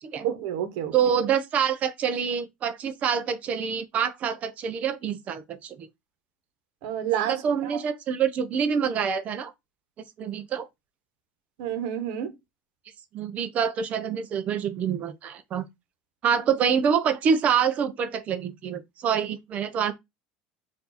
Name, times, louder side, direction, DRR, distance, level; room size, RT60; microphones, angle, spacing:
voice 1, 0.2-0.9 6.8-7.7 11.6-12.3, right 10 dB, 75° right, 1.1 m, -29 dB
voice 2, 0.9-5.9 7.3-9.5 10.2-10.7 13.1-15.6 16.2-19.9, right 7 dB, 35° right, 0.6 m, -26 dB
4.6 x 2.7 x 4.0 m
cardioid pair, 145°, 4 cm